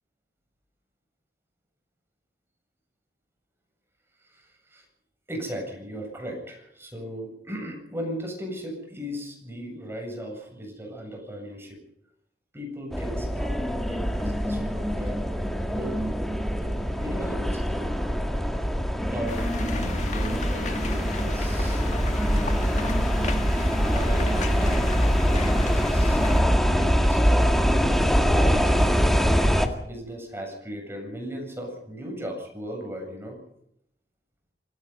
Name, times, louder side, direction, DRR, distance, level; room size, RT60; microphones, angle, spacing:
voice 1, 4.2-4.9 5.3-11.8 12.5-15.2 15.7-16.0 16.6-17.9 19.1-22.7 23.6-24.9 25.2-26.2 26.7-29.1 29.5-33.4, equal, 15° right, 2 dB, 7.9 m, -37 dB
sound 1, 12.9-29.7, equal, ahead, 2.0 m, -23 dB
sound 2, 19.3-26.4, left 4 dB, 40° left, 2.0 m, -37 dB
26.0 x 18.5 x 5.5 m, 0.74 s
head